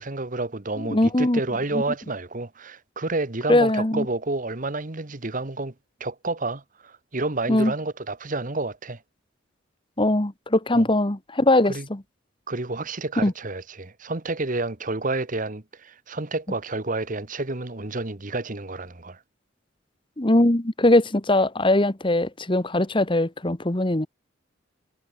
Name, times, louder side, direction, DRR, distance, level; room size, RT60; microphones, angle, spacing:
voice 1, 0.0-5.7 6.0-9.0 10.7-10.8 11.7-11.9 12.5-19.2, right 2 dB, 40° right, 1.4 m, -30 dB
voice 2, 0.9-1.4 3.5-4.0 7.5-7.7 10.0-12.0 13.2-13.3 20.2-24.1, left 1 dB, 25° left, 1.3 m, -21 dB
head